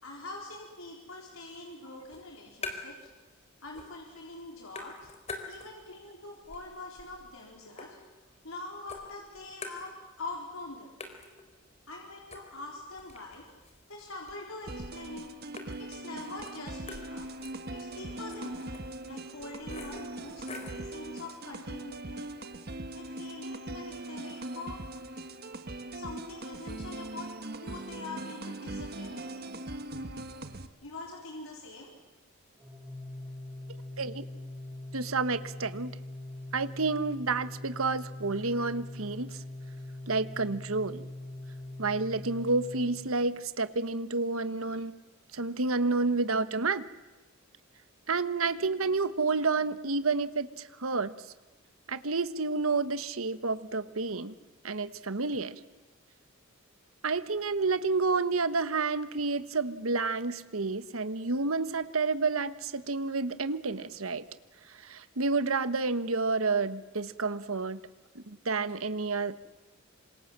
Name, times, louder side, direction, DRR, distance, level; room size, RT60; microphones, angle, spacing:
voice 1, 0.0-3.0 3.6-4.9 5.4-8.0 8.4-11.1 11.9-13.4 13.9-15.3 15.8-17.3 17.7-18.8 19.1-22.3 22.9-24.8 25.9-27.3 27.6-29.5 30.8-31.9, left 2 dB, 80° left, -1 dB, 4.3 m, -44 dB
sound 1, 2.1-3.1 3.4-4.1 4.4-6.0 6.4-8.5 8.9-10.3 10.6-10.7 11.0-20.9, left 3 dB, 30° left, 4.0 m, -46 dB
sound 2, 14.7-30.7, right 2 dB, 50° right, 1.4 m, -41 dB
Organ, 32.6-43.5, left 1 dB, 10° right, 4.4 m, -42 dB
voice 2, 34.9-35.9 36.5-39.3 40.1-41.1 41.8-45.0 45.3-46.8 48.1-50.5 50.8-51.1 51.9-54.3 54.6-55.5 57.0-64.2 64.9-67.8 68.1-69.4, right 3 dB, 90° right, 13 dB, 1.3 m, -30 dB
27.0 x 26.5 x 7.5 m, 1.2 s
head